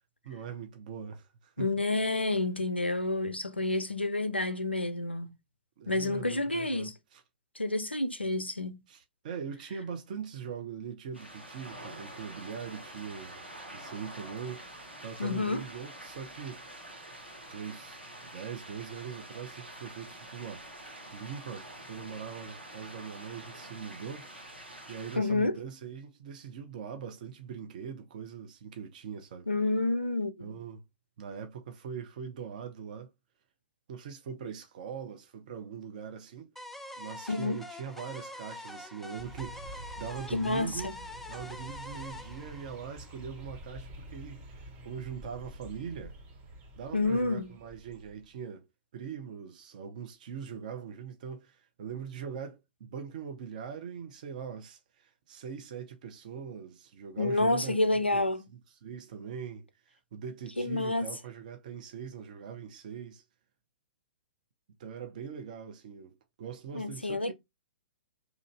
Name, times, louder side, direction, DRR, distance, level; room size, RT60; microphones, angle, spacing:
voice 1, 0.2-1.7 5.8-7.2 8.9-13.4 13.7-14.6 15.0-16.6 17.5-20.6 21.1-24.3 24.9-29.5 30.4-30.8 31.2-33.1 33.9-36.5 37.0-40.9 41.3-46.2 46.8-48.7 48.9-58.2 58.5-63.2 64.8-67.3, right 7 dB, 45° right, 0.7 m, -42 dB
voice 2, 1.6-5.3 5.9-6.9 7.6-8.8 15.2-15.6 25.2-25.6 29.5-30.5 37.3-37.6 40.3-40.9 46.9-47.5 57.2-58.4 60.6-61.1 66.7-67.3, left 2 dB, 90° left, 0.5 m, -29 dB
sound 1, 11.1-25.2, right 1 dB, 90° right, 1.1 m, -47 dB
sound 2, 36.6-43.5, left 1 dB, 5° left, 0.3 m, -45 dB
sound 3, 39.2-48.3, right 1 dB, 30° right, 1.3 m, -48 dB
2.9 x 2.5 x 3.2 m
figure-of-eight pair, 115°, 6 cm